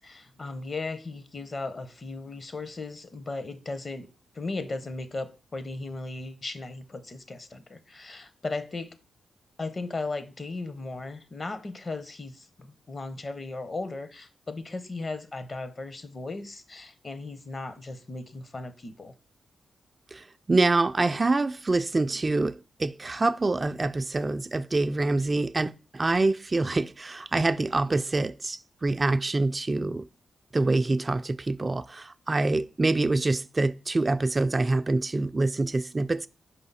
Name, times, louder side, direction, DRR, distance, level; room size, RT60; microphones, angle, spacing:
voice 1, 0.0-4.1 4.3-8.9 9.6-19.1, left 3 dB, 45° left, 1.0 m, -36 dB
voice 2, 20.1-30.1 30.5-36.3, right 2 dB, 35° right, 0.4 m, -26 dB
5.7 x 5.2 x 4.1 m
supercardioid pair, 45°, 0 cm